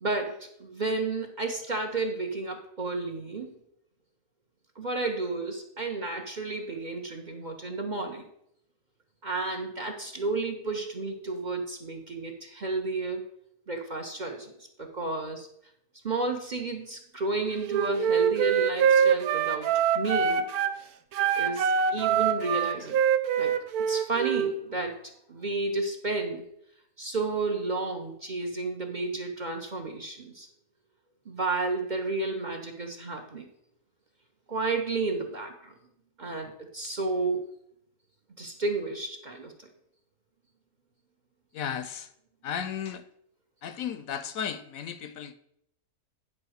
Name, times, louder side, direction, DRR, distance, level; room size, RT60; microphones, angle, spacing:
voice 1, 0.0-3.5 4.8-8.3 9.2-13.2 13.7-15.5 16.0-20.4 21.3-23.0 23.4-23.6 23.9-26.4 27.0-30.5 31.3-33.5 34.5-35.7 36.2-37.4 38.4-39.7, right 3 dB, 35° right, 0.9 m, -32 dB
Wind instrument woodwind instrument, 17.7-20.8 21.1-24.5, right 7 dB, 80° right, 1.1 m, -24 dB
voice 2, 41.5-42.1 42.4-43.0 43.6-45.3, left 8 dB, 70° left, 1.0 m, -34 dB
9.8 x 3.8 x 6.3 m
omnidirectional pair, 1.6 m